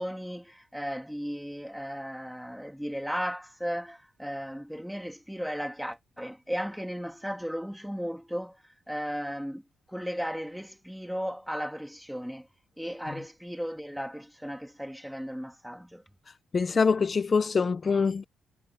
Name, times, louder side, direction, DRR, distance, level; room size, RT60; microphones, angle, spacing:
voice 1, 0.0-8.6 8.9-9.6 9.9-12.5 12.8-16.0, equal, ahead, 2.8 m, -35 dB
voice 2, 16.3-18.2, left 5 dB, 30° left, 0.5 m, -25 dB
cardioid pair, 155°, 0 cm